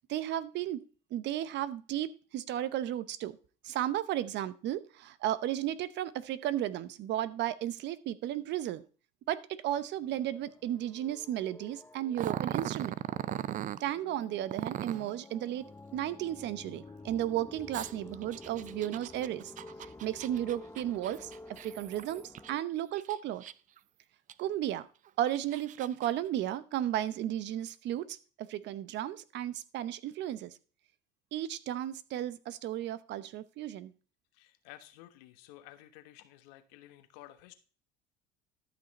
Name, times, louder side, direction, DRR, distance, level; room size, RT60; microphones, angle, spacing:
voice 1, 0.1-0.8 1.1-3.4 3.6-8.8 9.3-12.9 13.8-15.6 15.9-19.5 20.0-21.3 21.6-23.4 24.4-24.9 25.2-30.6 31.3-33.9, right 12 dB, 55° right, 16 dB, 0.8 m, -34 dB
sound 1, 10.0-22.6, left 2 dB, 10° left, 0.7 m, -50 dB
Growling, 12.1-13.8 14.5-15.1 17.7-22.5 23.0-23.8 24.3-24.4 25.1-26.1, right 11 dB, 40° right, 0.4 m, -38 dB
voice 2, 34.3-37.5, left 14 dB, 85° left, 10 dB, 1.3 m, -53 dB
12.5 x 5.9 x 4.1 m, 0.38 s
supercardioid pair, 100°, 21 cm